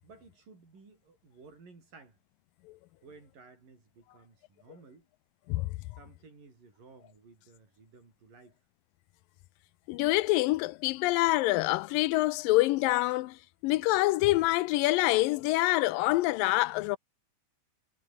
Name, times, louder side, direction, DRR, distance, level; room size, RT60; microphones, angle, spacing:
voice 1, 0.0-2.2 3.0-5.1 5.9-8.6, right 4 dB, 70° right, 8.4 m, -55 dB
voice 2, 9.9-17.0, left 19 dB, 85° left, 2.3 m, -26 dB
omnidirectional pair, 4.0 m